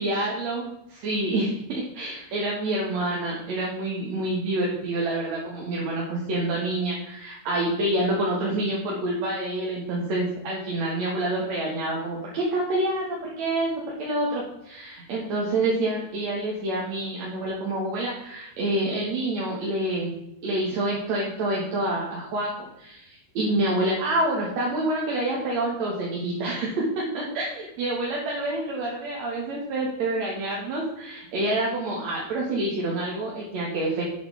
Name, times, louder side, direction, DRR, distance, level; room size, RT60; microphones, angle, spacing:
voice 1, 0.0-13.7 14.0-20.1 20.4-22.5 22.8-34.0, right 1 dB, 55° right, -4 dB, 2.7 m, -27 dB
11.5 x 8.3 x 3.5 m, 0.85 s
omnidirectional pair, 4.3 m